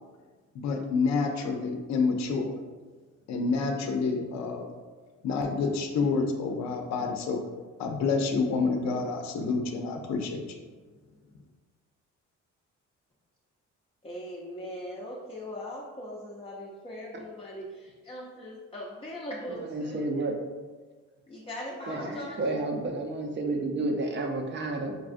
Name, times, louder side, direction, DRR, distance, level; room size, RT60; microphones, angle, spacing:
voice 1, 0.5-2.6 3.3-4.7 5.2-7.4 7.8-10.4, left 4 dB, 65° left, 3 dB, 0.6 m, -28 dB
voice 2, 14.0-20.1 21.3-22.5, equal, 20° left, -4 dB, 0.6 m, -40 dB
voice 3, 19.5-20.4 21.9-25.0, right 2 dB, 35° right, 3 dB, 0.6 m, -31 dB
5.3 x 2.4 x 2.5 m, 1.4 s
cardioid pair, 90°, 30 cm